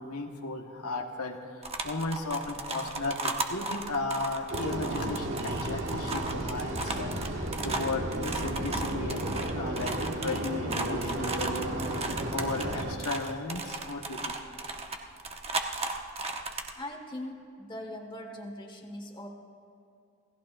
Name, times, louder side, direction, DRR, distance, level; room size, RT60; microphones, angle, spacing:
voice 1, 0.0-11.9 12.3-14.4, left 3 dB, 85° left, 2 dB, 1.4 m, -35 dB
sound 1, 1.6-16.7, right 3 dB, 25° right, 1.0 m, -36 dB
sound 2, 4.5-13.0, right 1 dB, 55° right, 1.7 m, -33 dB
voice 2, 16.7-19.3, left 1 dB, 20° left, 2 dB, 1.6 m, -41 dB
27.5 x 18.0 x 2.6 m, 2.5 s
head